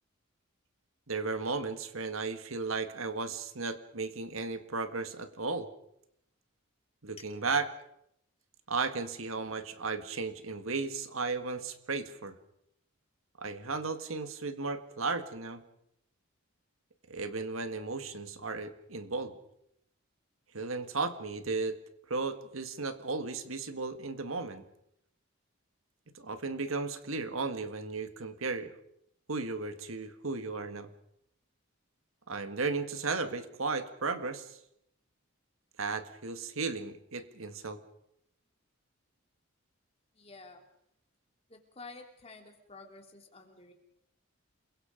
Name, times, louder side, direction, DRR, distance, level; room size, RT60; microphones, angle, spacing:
voice 1, 1.1-5.7 7.0-7.7 8.7-12.3 13.4-15.6 17.1-19.4 20.5-21.8 22.1-24.6 26.2-28.7 29.3-30.9 32.3-34.6 35.8-37.8, right 4 dB, 75° right, 10 dB, 1.8 m, -35 dB
voice 2, 40.1-40.6 41.5-43.7, left 3 dB, 30° left, 3 dB, 3.2 m, -50 dB
28.5 x 22.0 x 5.2 m, 0.76 s
head